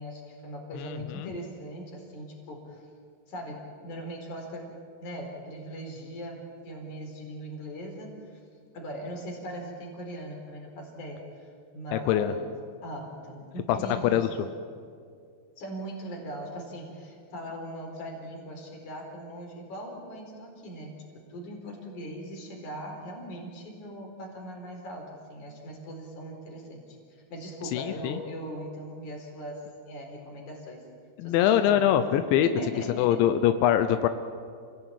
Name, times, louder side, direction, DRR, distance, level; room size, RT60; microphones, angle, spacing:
voice 1, 0.0-2.8 3.3-4.7 5.0-8.4 8.7-12.5 12.8-14.3 15.6-27.0 27.3-29.6 29.9-30.9 31.2-32.0 32.3-33.2, equal, 45° left, 1 dB, 5.5 m, -40 dB
voice 2, 0.8-1.3 11.9-12.3 13.7-13.8 14.0-14.3 27.7-28.2 31.2-32.5 33.0-34.1, left 10 dB, 90° left, 10 dB, 3.2 m, -23 dB
27.5 x 17.0 x 8.8 m, 2.3 s
omnidirectional pair, 5.1 m